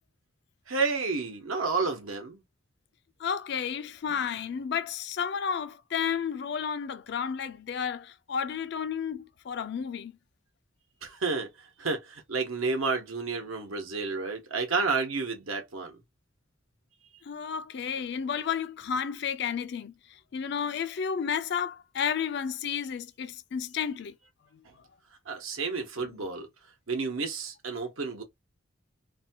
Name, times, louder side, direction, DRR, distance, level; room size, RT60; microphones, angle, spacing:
voice 1, 0.7-2.4 11.0-11.5 11.8-15.9 25.3-26.5 26.9-28.2, right 4 dB, 85° right, 1.0 m, -30 dB
voice 2, 3.2-10.2 17.2-24.2 24.5-24.6 26.1-26.2, left 7 dB, 55° left, 0.3 m, -32 dB
2.6 x 2.3 x 2.7 m
head